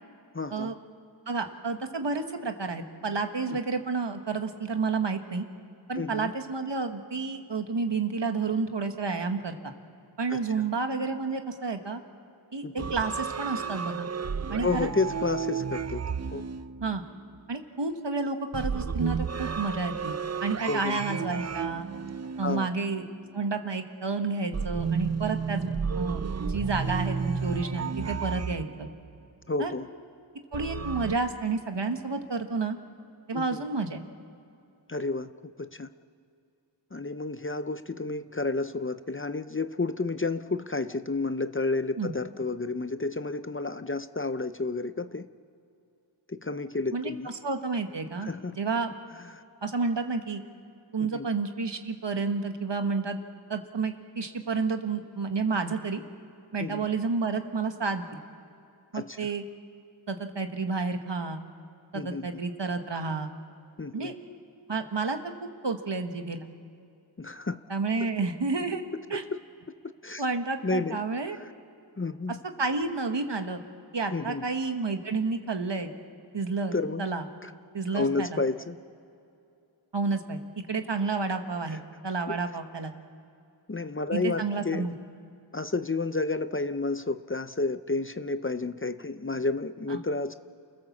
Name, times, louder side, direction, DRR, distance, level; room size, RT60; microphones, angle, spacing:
voice 1, 0.3-0.7 3.5-3.6 5.9-6.3 10.3-10.7 12.6-12.7 14.6-16.5 20.7-21.0 22.4-22.7 29.5-29.9 33.3-33.7 34.9-35.9 36.9-45.3 46.3-47.3 48.2-48.6 49.3-49.4 51.1-51.3 56.6-56.8 58.9-59.2 61.9-62.3 63.8-64.1 67.2-67.6 69.1-69.4 70.0-70.2 70.6-71.0 71.3-71.5 72.0-72.4 74.1-74.4 76.7-77.0 77.4-77.5 77.9-78.8 81.7-81.8 82.3-82.4 83.7-84.9 85.5-90.3, left 3 dB, 25° left, 11 dB, 0.6 m, -31 dB
voice 2, 1.3-5.4 5.9-9.7 10.2-12.0 12.5-14.1 14.5-14.9 16.8-17.0 17.5-20.1 20.4-21.9 22.4-23.0 23.3-28.9 29.6-29.7 30.5-32.8 33.3-34.0 42.0-42.1 46.9-48.9 49.6-50.4 50.9-53.2 53.5-56.0 56.5-58.1 58.9-59.4 60.1-61.4 61.9-63.3 63.9-64.1 64.7-65.2 65.6-66.4 67.7-68.8 69.1-69.2 70.2-71.4 72.6-73.6 73.9-75.9 76.3-77.2 77.7-78.4 79.9-80.4 80.7-82.9 84.1-84.9 89.9-90.0, right 4 dB, 65° right, 6 dB, 1.6 m, -30 dB
sound 1, 12.8-17.4 18.5-23.3 24.5-29.2 30.5-31.2, right 6 dB, 35° right, 0.5 m, -32 dB
29.0 x 16.5 x 7.3 m, 2.6 s
wide cardioid pair, 45°, 46 cm